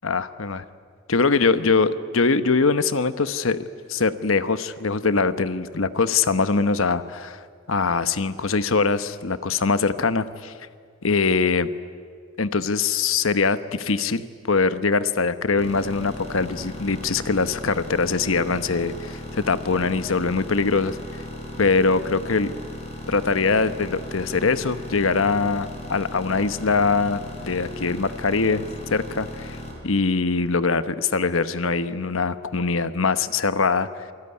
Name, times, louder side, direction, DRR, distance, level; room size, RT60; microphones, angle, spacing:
voice 1, 0.0-0.6 1.1-3.6 3.9-7.4 7.7-10.5 11.0-11.7 12.4-21.2 21.6-22.5 23.1-29.6 29.8-34.0, left 4 dB, 80° left, 12 dB, 1.0 m, -22 dB
sound 1, 15.6-29.7, left 1 dB, 30° left, 5.2 m, -37 dB
27.0 x 19.5 x 9.8 m, 2.1 s
head